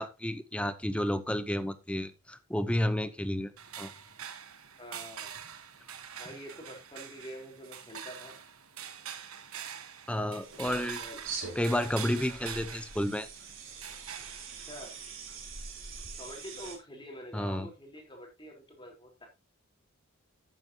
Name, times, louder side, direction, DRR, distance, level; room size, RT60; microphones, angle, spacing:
voice 1, 0.0-3.5 3.8-3.9 10.1-11.0 11.6-13.3 17.3-17.7, left 1 dB, 5° left, 0.8 m, -31 dB
sound 1, 3.6-16.8, right 8 dB, 90° right, 1.4 m, -45 dB
voice 2, 4.8-5.3 6.2-8.4 10.5-11.2 11.8-11.9 14.6-14.9 16.2-19.3, equal, 20° left, 4.0 m, -46 dB
sound 2, 10.4-16.8, right 5 dB, 65° right, 4.0 m, -44 dB
12.0 x 9.3 x 2.9 m
head